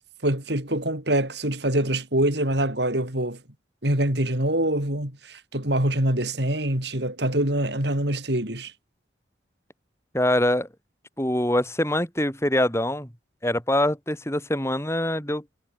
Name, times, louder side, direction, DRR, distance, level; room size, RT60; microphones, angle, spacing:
voice 1, 0.2-3.4 3.8-8.7, right 1 dB, 60° right, 5.3 m, -25 dB
voice 2, 10.1-10.7 11.2-13.1 13.4-15.4, left 1 dB, 15° left, 6.2 m, -24 dB
head